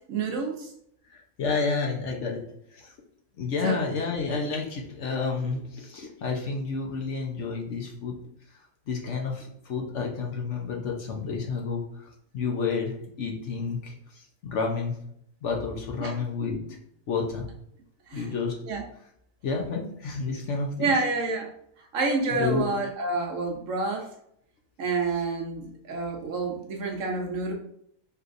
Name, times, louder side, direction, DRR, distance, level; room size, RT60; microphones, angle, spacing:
voice 1, 0.1-0.7 3.6-3.8 16.0-16.1 18.1-18.2 18.7-18.8 20.8-21.5 21.9-24.1 24.8-27.5, right 3 dB, 65° right, 2 dB, 1.1 m, -28 dB
voice 2, 1.1-2.4 2.7-2.9 3.4-8.1 8.9-15.0 15.4-16.6 17.1-17.5 18.1-18.6 19.4-20.9 22.3-22.7, left 4 dB, 60° left, 0 dB, 1.0 m, -30 dB
4.7 x 3.2 x 2.5 m, 0.70 s
omnidirectional pair, 1.5 m